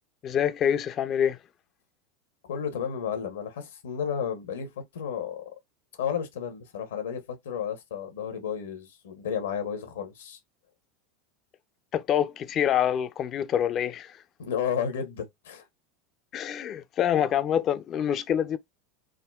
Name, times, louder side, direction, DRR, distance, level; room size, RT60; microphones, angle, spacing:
voice 1, 0.2-1.4 11.9-14.2 16.3-18.6, left 9 dB, 40° left, 0.4 m, -26 dB
voice 2, 2.5-5.4 6.0-10.4 14.4-15.6, left 7 dB, 80° left, 0.9 m, -32 dB
3.6 x 2.1 x 2.3 m
hypercardioid pair, 95°, 0 cm